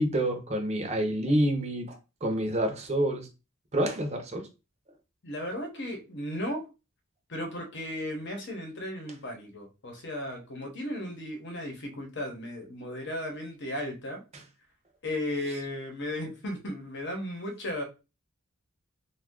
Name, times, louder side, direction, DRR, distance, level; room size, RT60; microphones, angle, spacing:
voice 1, 0.0-3.3 3.7-4.5 14.3-14.4, right 1 dB, 30° right, 0.6 m, -28 dB
voice 2, 5.2-6.7 7.3-14.2 15.0-17.8, left 1 dB, 55° left, 0.9 m, -35 dB
2.6 x 2.3 x 3.6 m
head